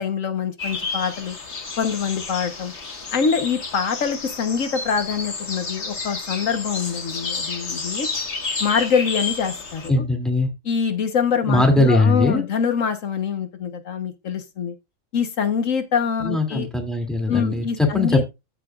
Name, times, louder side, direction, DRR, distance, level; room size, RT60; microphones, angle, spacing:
voice 1, 0.0-1.4 1.8-2.7 3.1-8.1 8.6-10.0 10.6-14.7 15.1-16.7 17.3-18.2, left 6 dB, 85° left, 1.6 m, -24 dB
sound 1, 0.6-9.9, left 4 dB, 60° left, 1.8 m, -31 dB
voice 2, 9.9-10.5 11.5-12.4 16.2-18.3, left 2 dB, ahead, 2.6 m, -20 dB
14.5 x 5.9 x 2.4 m
omnidirectional pair, 1.3 m